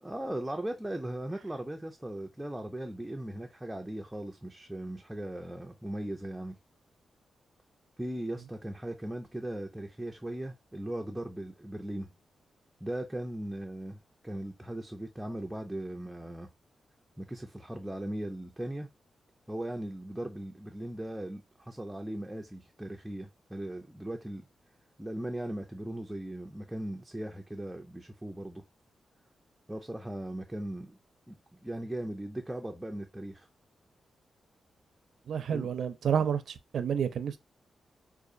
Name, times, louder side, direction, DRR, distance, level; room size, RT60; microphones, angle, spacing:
voice 1, 0.0-6.6 8.0-12.1 12.8-16.5 17.2-18.9 19.5-24.5 25.0-28.6 29.7-31.0 31.3-33.5 35.5-35.7, right 1 dB, 5° right, 0.4 m, -38 dB
voice 2, 35.3-37.4, right 8 dB, 70° right, 0.5 m, -30 dB
4.8 x 2.4 x 2.5 m
wide cardioid pair, 170°, 0 cm